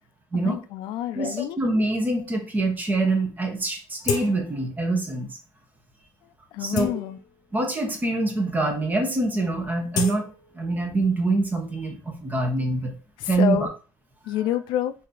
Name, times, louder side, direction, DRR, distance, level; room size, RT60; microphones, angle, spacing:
voice 1, 0.3-1.6 6.5-7.2 13.2-13.7 14.3-14.9, left 12 dB, 80° left, 12 dB, 0.4 m, -28 dB
voice 2, 1.1-5.3 6.6-7.0 7.5-10.3 10.5-12.9 13.3-13.7, right 2 dB, 20° right, 3 dB, 1.0 m, -25 dB
sound 1, 3.3-3.4 4.0-4.7 5.1-5.2 5.9-6.0 6.5-7.6 8.3-8.4 8.6-9.0 9.3-11.1 11.4-13.3, left 5 dB, 60° left, 0.7 m, -34 dB
3.1 x 2.7 x 3.8 m, 0.35 s
cardioid pair, 125°, 8 cm